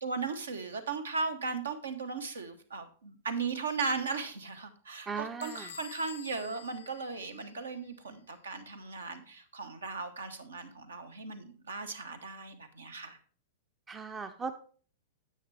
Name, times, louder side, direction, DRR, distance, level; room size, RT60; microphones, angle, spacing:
voice 1, 0.0-13.2, right 4 dB, 70° right, 9 dB, 1.1 m, -37 dB
voice 2, 5.1-5.7 13.9-14.5, right 5 dB, 15° right, 9 dB, 0.5 m, -38 dB
Bell / Door, 5.4-7.9, left 10 dB, 55° left, 0.5 m, -50 dB
9.9 x 7.7 x 3.4 m, 0.42 s
figure-of-eight pair, 100°, 0 cm